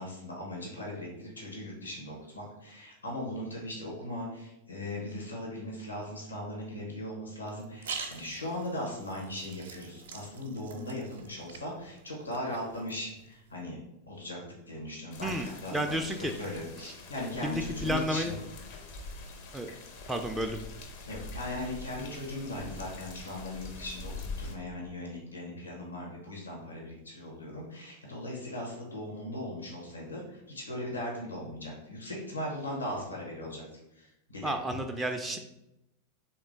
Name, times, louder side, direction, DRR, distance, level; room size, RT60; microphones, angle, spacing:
voice 1, 0.0-13.8 14.1-14.4 14.7-18.3 21.0-24.1 24.4-33.6 33.9-34.5, left 1 dB, 80° left, -2 dB, 1.2 m, -38 dB
sound 1, 7.5-13.6, right 5 dB, 60° right, 0.5 m, -45 dB
sound 2, 15.1-24.5, left 3 dB, 45° left, 0.6 m, -44 dB
voice 2, 15.2-16.3 17.4-18.3 19.5-19.7 20.1-20.6 34.4-35.4, equal, 5° right, 3 dB, 0.3 m, -31 dB
3.2 x 2.9 x 3.9 m, 0.87 s
figure-of-eight pair, 90°, 0 cm